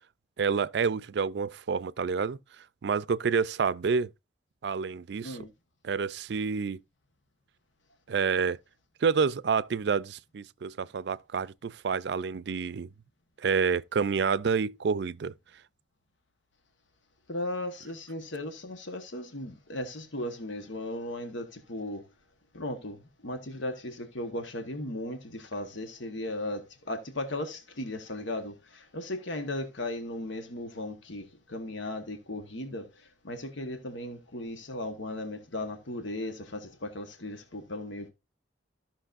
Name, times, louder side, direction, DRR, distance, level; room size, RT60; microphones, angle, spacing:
voice 1, 0.4-2.4 2.8-4.1 4.6-5.4 5.8-6.8 8.1-8.6 9.0-12.9 13.4-15.3, right 5 dB, 65° right, 0.4 m, -28 dB
voice 2, 17.3-22.0 22.5-38.1, left 1 dB, 90° left, 1.2 m, -36 dB
14.0 x 6.0 x 2.5 m
head